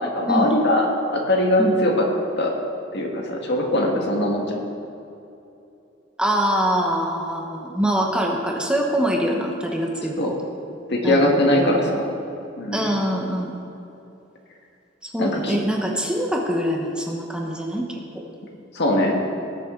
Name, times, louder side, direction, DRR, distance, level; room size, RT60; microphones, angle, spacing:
voice 1, 0.0-0.9 1.1-2.1 2.4-2.5 2.9-4.5 10.2-10.3 10.9-12.1 12.6-12.9 15.2-15.6 18.7-19.1, left 1 dB, 60° left, 1 dB, 1.7 m, -21 dB
voice 2, 6.2-10.3 11.0-11.9 12.7-13.6 15.0-18.0, equal, 5° right, 0 dB, 1.0 m, -24 dB
19.0 x 7.5 x 3.8 m, 2.8 s
head